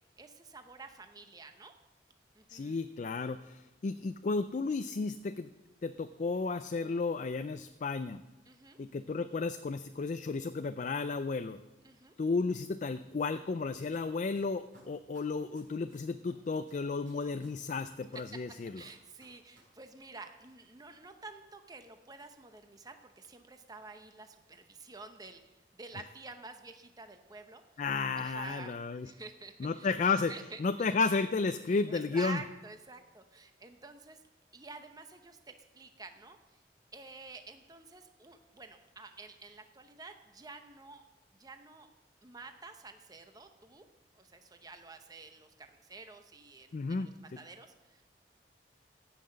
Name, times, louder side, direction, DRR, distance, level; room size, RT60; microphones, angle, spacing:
voice 1, 0.2-1.7 2.3-2.8 8.5-8.8 11.8-12.1 18.7-27.6 28.1-28.7 29.0-29.9 30.3-30.6 31.9-34.2 34.5-36.6 36.9-41.0 41.4-41.9 42.2-43.8 44.2-48.0, right 3 dB, 20° right, 7 dB, 0.7 m, -49 dB
voice 2, 2.5-5.5 5.8-8.2 8.8-11.6 12.2-18.8 27.8-29.1 29.6-30.3 30.6-32.4 46.7-47.1, left 4 dB, 45° left, 10 dB, 0.4 m, -33 dB
sound 1, 13.9-14.0 14.3-16.3 16.7-19.6 19.9-20.0, right 2 dB, 50° right, 5.2 m, -61 dB
16.0 x 5.8 x 6.4 m, 1.0 s
head